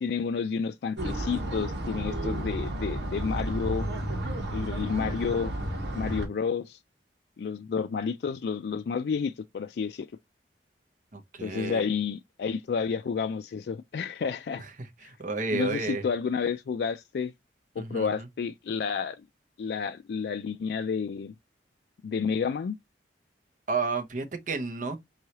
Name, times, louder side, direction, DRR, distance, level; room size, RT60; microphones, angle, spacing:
voice 1, 0.0-3.9 4.5-5.5 5.9-6.8 7.4-10.1 11.4-14.6 15.0-15.1 15.5-17.3 17.8-19.3 19.6-21.3 22.0-22.8, left 6 dB, 60° left, 0.3 m, -30 dB
sound 1, 1.0-6.3, right 1 dB, 70° right, 1.3 m, -32 dB
voice 2, 11.1-11.9 14.6-16.0 17.8-18.3 23.7-25.0, right 4 dB, 45° right, 0.8 m, -32 dB
4.5 x 3.2 x 2.8 m
head